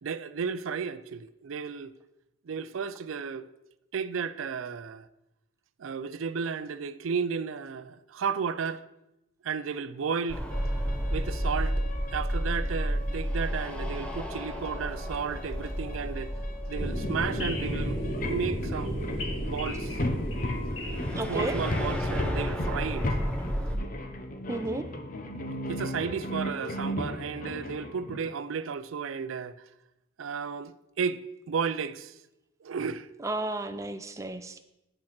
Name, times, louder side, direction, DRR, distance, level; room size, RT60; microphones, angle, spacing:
voice 1, 0.0-1.9 2.5-3.5 3.9-5.1 5.8-8.8 9.4-10.4 11.1-11.8 12.1-16.3 16.7-18.0 18.2-19.0 19.4-20.0 21.3-23.1 25.7-29.5 30.2-31.2 31.5-32.1 32.6-33.1, right 6 dB, 90° right, 0.5 m, -33 dB
sound 1, 10.3-23.8, equal, 5° left, 0.9 m, -32 dB
sound 2, 10.5-28.3, left 1 dB, 45° left, 0.9 m, -37 dB
sound 3, 16.7-22.1, equal, 85° left, 2.3 m, -34 dB
voice 2, 21.1-21.6 24.5-24.9 33.2-34.6, right 2 dB, 15° right, 0.5 m, -32 dB
8.7 x 6.4 x 5.9 m
head